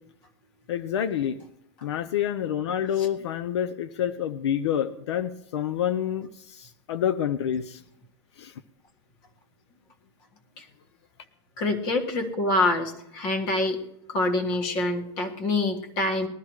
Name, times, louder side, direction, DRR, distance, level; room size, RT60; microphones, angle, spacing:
voice 1, 0.7-1.4 1.8-7.8 8.4-8.5, left 9 dB, 70° left, 13 dB, 0.7 m, -28 dB
voice 2, 11.6-13.8 14.1-16.3, left 2 dB, 30° left, 3 dB, 1.7 m, -26 dB
20.5 x 12.5 x 3.2 m, 0.82 s
supercardioid pair, 175°, 15 cm